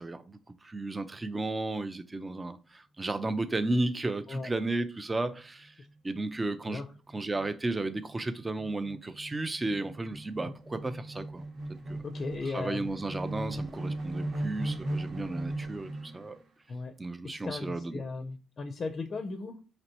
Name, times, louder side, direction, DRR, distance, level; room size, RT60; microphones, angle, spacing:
voice 1, 0.0-5.7 6.0-6.8 7.1-11.4 11.9-12.0 12.5-16.3 17.0-18.0, right 2 dB, 20° right, 0.4 m, -33 dB
Horror Tension Reverse, 5.6-5.9 6.3-6.4 6.7-16.3, right 1 dB, 65° right, 1.1 m, -38 dB
voice 2, 12.0-12.9 16.7-16.9 17.2-19.6, left 3 dB, 40° left, 0.5 m, -37 dB
4.2 x 3.0 x 2.8 m
cardioid pair, 90°, 0 cm